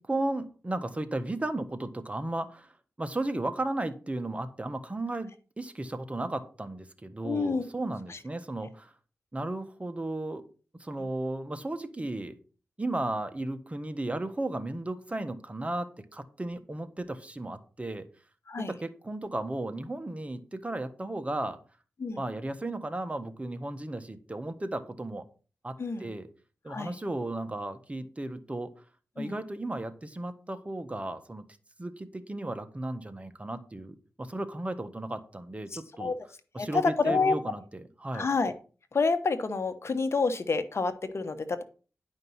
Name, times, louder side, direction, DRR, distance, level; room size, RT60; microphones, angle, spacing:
voice 1, 0.0-8.9 9.3-10.4 10.7-12.3 12.8-18.1 18.6-21.6 22.2-25.3 25.6-26.3 26.6-28.7 29.2-31.4 31.8-36.1 36.5-38.3, right 2 dB, 25° right, 9 dB, 1.5 m, -35 dB
voice 2, 7.2-7.7 8.1-8.2 18.5-18.7 22.0-22.2 25.8-26.1 26.7-26.9 29.2-29.3 35.7-36.1 36.6-37.3 38.1-38.5 38.9-41.6, left 4 dB, 55° left, 10 dB, 1.2 m, -28 dB
11.0 x 5.3 x 5.7 m, 0.37 s
cardioid pair, 60°, 5 cm